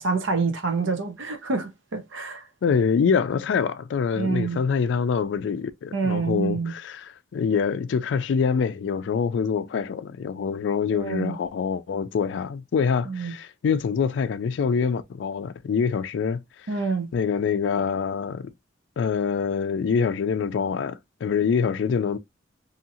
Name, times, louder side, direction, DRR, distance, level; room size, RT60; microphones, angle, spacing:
voice 1, 0.0-2.4 4.2-4.6 5.9-6.7 10.9-11.4 13.0-13.3 16.7-17.1, right 4 dB, 90° right, 0.7 m, -27 dB
voice 2, 2.6-16.4 17.1-18.5 19.0-22.2, left 6 dB, 70° left, 0.3 m, -25 dB
2.7 x 2.7 x 2.6 m
head